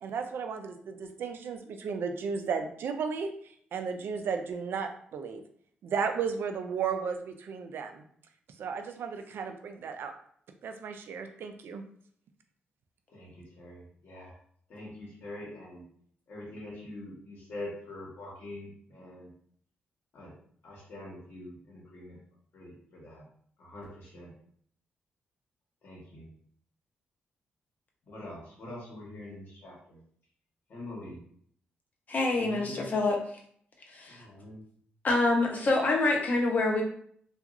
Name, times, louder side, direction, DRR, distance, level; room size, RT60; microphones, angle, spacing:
voice 1, 0.0-5.4 5.8-8.0 8.6-10.1 10.6-11.8, right 6 dB, 75° right, 6 dB, 0.4 m, -34 dB
voice 2, 13.1-14.3 14.7-15.8 16.3-19.3 20.1-20.3 20.6-22.2 22.5-23.2 23.6-24.3 25.8-26.3 28.1-30.0 30.7-31.2 32.3-32.9 34.1-34.6, left 1 dB, 65° left, -5 dB, 1.0 m, -44 dB
voice 3, 32.1-33.2 33.9-34.2 35.0-36.8, left 2 dB, 45° left, 0 dB, 0.7 m, -26 dB
2.8 x 2.4 x 2.4 m, 0.62 s
cardioid pair, 80°, 4 cm